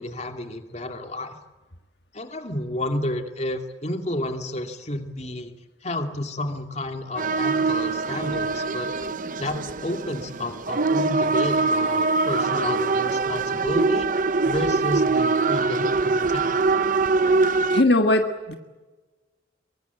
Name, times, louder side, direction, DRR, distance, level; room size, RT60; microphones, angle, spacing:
voice 1, 0.0-1.3 2.1-5.5 5.8-8.9 9.4-14.1 14.4-16.5, left 1 dB, 35° left, 5 dB, 2.5 m, -31 dB
sound 1, 7.2-17.8, right 3 dB, 45° right, 0.9 m, -23 dB
voice 2, 17.7-18.5, left 2 dB, 60° left, 5 dB, 1.8 m, -20 dB
25.0 x 23.5 x 8.3 m, 1.2 s
head